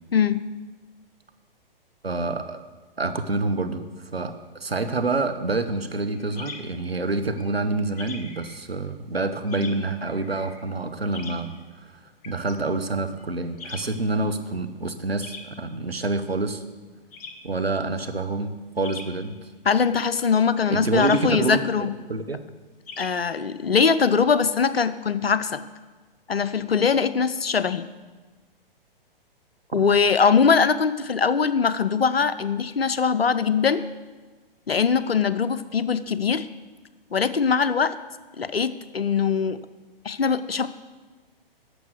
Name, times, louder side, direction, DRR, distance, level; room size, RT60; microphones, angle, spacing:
voice 1, 2.0-2.6 3.0-11.5 11.8-11.9 12.2-16.6 17.4-19.3 20.7-21.6 22.1-22.4, right 3 dB, 90° right, 8 dB, 1.0 m, -27 dB
sound 1, 6.1-23.8, left 4 dB, 40° left, 1.2 m, -44 dB
voice 2, 19.7-21.9 23.0-25.6 26.3-27.8 29.7-33.8 34.7-36.5 37.1-37.9 38.4-39.6 40.0-40.7, left 6 dB, 85° left, 14 dB, 0.7 m, -22 dB
11.5 x 7.0 x 6.4 m, 1.3 s
figure-of-eight pair, 120°, 29 cm